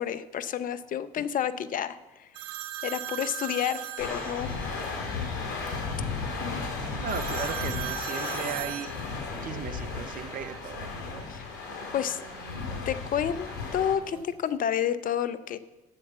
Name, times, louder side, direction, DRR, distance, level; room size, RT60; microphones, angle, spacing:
voice 1, 0.0-2.3 2.8-4.5 6.4-6.7 11.3-11.4 11.9-12.2 12.9-15.6, left 9 dB, 50° left, 14 dB, 0.7 m, -30 dB
sound 1, 2.3-4.8 7.1-11.3 11.7-12.8 13.6-14.6, right 12 dB, 80° right, 0.5 m, -40 dB
sound 2, 4.0-13.9, left 4 dB, 70° left, 2.5 m, -34 dB
voice 2, 7.0-9.1 9.4-10.9, right 8 dB, 50° right, 11 dB, 0.8 m, -36 dB
7.8 x 7.2 x 8.1 m, 1.1 s
hypercardioid pair, 55°, 18 cm